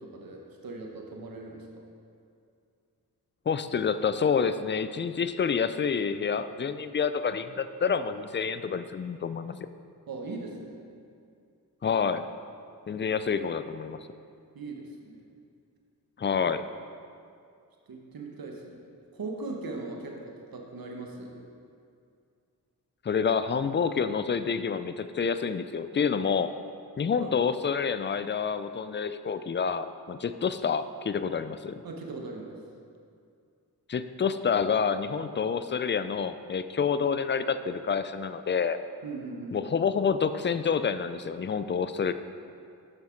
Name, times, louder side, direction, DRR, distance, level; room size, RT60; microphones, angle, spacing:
voice 1, 0.0-1.9 10.1-10.8 12.9-13.0 14.5-15.2 17.9-18.8 19.1-21.5 27.2-27.4 31.8-32.6 39.0-39.7, right 3 dB, 60° right, 1 dB, 1.1 m, -39 dB
voice 2, 3.5-9.7 11.8-12.3 12.9-14.0 16.2-16.6 23.0-26.5 27.0-31.8 33.9-38.8 39.5-42.1, left 6 dB, 30° left, 12 dB, 0.4 m, -28 dB
7.3 x 6.1 x 4.5 m, 2.4 s
cardioid pair, 40°, 40 cm